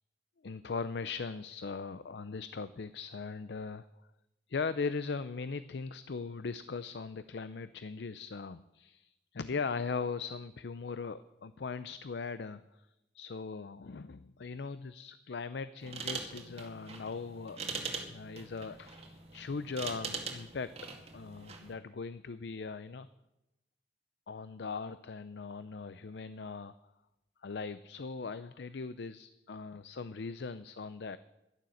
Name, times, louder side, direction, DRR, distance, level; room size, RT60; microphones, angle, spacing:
voice 1, 0.4-3.8 4.5-12.6 13.1-17.6 18.1-20.7 21.1-23.1 24.3-26.7 27.4-31.2, left 4 dB, 65° left, 14 dB, 0.5 m, -39 dB
sound 1, 15.8-21.7, right 4 dB, 35° right, 2.2 m, -42 dB
12.0 x 11.5 x 7.8 m, 0.94 s
head